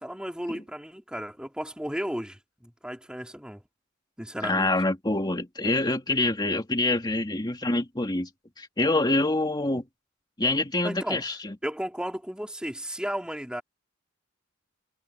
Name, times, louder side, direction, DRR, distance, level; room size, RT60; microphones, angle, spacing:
voice 1, 0.0-3.6 4.2-4.7 10.8-11.2 11.6-13.6, equal, 5° right, 2.6 m, -34 dB
voice 2, 4.4-8.3 8.6-9.9 10.4-11.6, left 2 dB, 20° left, 2.3 m, -26 dB
head